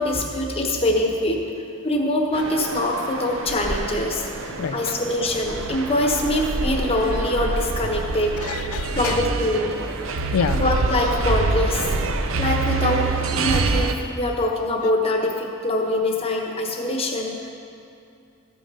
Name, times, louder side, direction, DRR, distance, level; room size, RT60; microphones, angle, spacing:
voice 1, 0.0-1.4 1.8-8.4 9.0-9.7 10.5-11.9 12.4-17.5, left 1 dB, 25° left, 1 dB, 1.0 m, -24 dB
sound 1, 2.3-13.9, right 3 dB, 65° right, 0.6 m, -26 dB
voice 2, 4.6-4.9 8.4-9.2 10.1-10.6, left 6 dB, 75° left, 10 dB, 0.4 m, -27 dB
14.0 x 6.2 x 5.5 m, 2.5 s
head